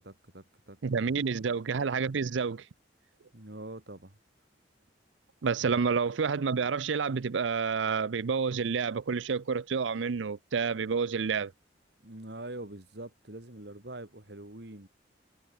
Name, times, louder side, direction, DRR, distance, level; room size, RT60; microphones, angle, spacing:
voice 1, 0.0-0.8 1.0-1.2 3.3-4.2 12.0-14.9, right 1 dB, 60° right, 2.5 m, -44 dB
voice 2, 0.8-2.6 5.4-11.5, right 5 dB, 80° right, 0.5 m, -29 dB
head